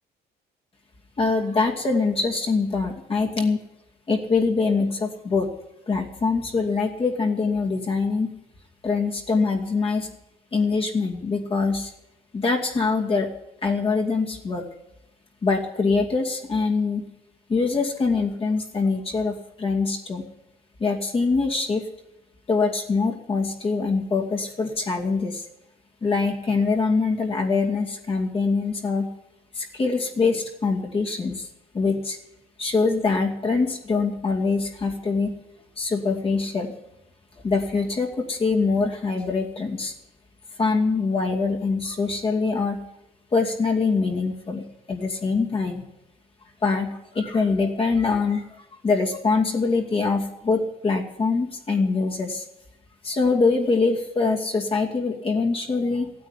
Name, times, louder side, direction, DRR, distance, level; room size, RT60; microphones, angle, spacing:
voice 1, 1.2-3.6 4.1-5.5 5.9-8.3 8.8-10.1 10.5-11.9 12.3-13.3 13.6-14.6 15.4-17.1 17.5-20.3 20.8-21.8 22.5-25.4 26.0-29.1 29.5-31.5 31.7-32.2 32.6-35.3 35.8-36.7 37.4-39.9 40.6-42.8 43.3-45.8 46.6-52.4 53.0-56.1, left 4 dB, 35° left, 0 dB, 2.4 m, -24 dB
15.0 x 9.3 x 9.8 m, 0.88 s
cardioid pair, 110°, 17 cm